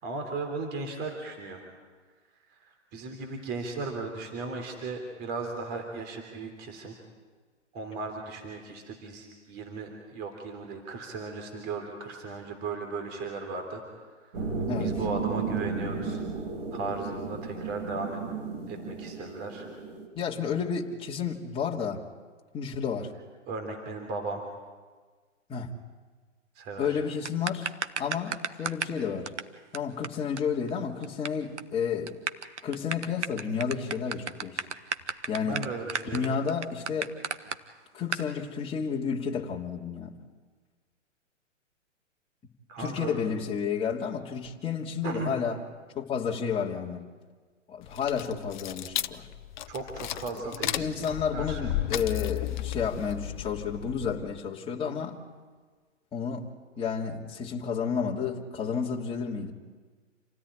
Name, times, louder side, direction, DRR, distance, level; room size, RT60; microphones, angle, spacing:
voice 1, 0.0-1.7 2.5-7.0 7.7-14.4 14.8-16.3 16.7-18.2 18.7-19.7 23.5-24.4 26.5-27.0 35.4-36.3 42.7-43.2 45.0-45.4 49.7-51.7, right 3 dB, 25° right, 3.3 m, -36 dB
sound 1, 14.3-20.1, right 4 dB, 55° right, 5.3 m, -34 dB
voice 2, 14.7-15.0 20.1-22.0 22.5-23.1 25.5-25.7 26.8-27.7 28.0-29.3 29.7-32.2 32.6-34.6 35.3-35.6 36.1-37.1 37.9-40.1 42.8-45.6 45.9-47.1 47.7-49.3 50.3-50.5 50.8-55.2 56.1-56.5 56.8-59.5, left 6 dB, 15° left, 2.6 m, -31 dB
sound 2, 27.2-29.0 29.3-29.4 29.7-29.8 30.0-30.1 30.4-30.5 30.7-31.3 31.6-31.7 32.1-37.6 38.1-38.2, right 6 dB, 70° right, 1.5 m, -32 dB
sound 3, 47.8-54.4, left 13 dB, 40° left, 0.8 m, -34 dB
28.0 x 17.5 x 10.0 m
figure-of-eight pair, 120°, 37 cm